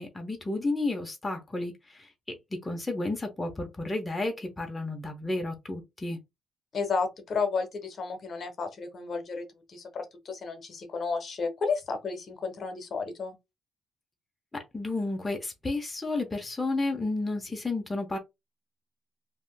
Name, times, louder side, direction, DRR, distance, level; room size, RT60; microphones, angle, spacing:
voice 1, 0.0-2.1 2.5-6.2 14.5-18.2, left 2 dB, 20° left, 0.8 m, -32 dB
voice 2, 6.7-13.3, left 4 dB, 50° left, 1.0 m, -32 dB
3.4 x 2.6 x 2.2 m
cardioid pair, 90°, 0 cm